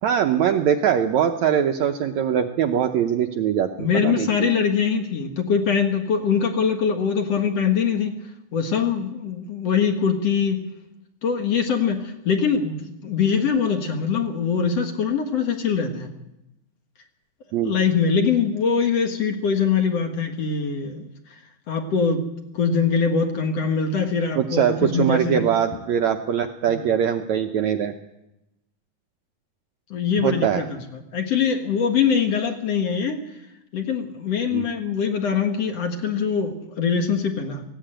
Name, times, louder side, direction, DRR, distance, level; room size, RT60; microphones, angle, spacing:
voice 1, 0.0-4.5 17.5-17.7 24.4-27.9 30.2-30.6 34.5-34.7, right 9 dB, 70° right, 6 dB, 1.8 m, -22 dB
voice 2, 3.8-8.2 8.5-10.6 11.2-16.1 17.6-21.1 21.7-25.4 26.7-26.9 29.9-33.2 33.7-37.6, left 6 dB, 55° left, 5 dB, 2.2 m, -23 dB
18.0 x 16.5 x 8.9 m, 0.92 s
omnidirectional pair, 4.1 m